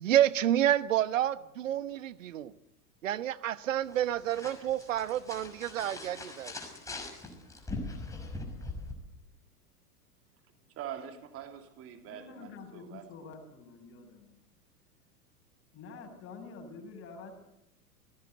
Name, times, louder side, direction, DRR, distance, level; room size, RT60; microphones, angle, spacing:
voice 1, 0.0-2.5 3.0-6.5, right 11 dB, 60° right, 1.2 m, -29 dB
sound 1, 3.9-8.9, left 2 dB, 5° left, 6.0 m, -41 dB
voice 2, 10.8-13.3, right 9 dB, 30° right, 2.8 m, -44 dB
voice 3, 12.1-14.4 15.7-17.3, left 4 dB, 30° left, 7.3 m, -48 dB
29.0 x 18.0 x 8.0 m
figure-of-eight pair, 90°, 45 cm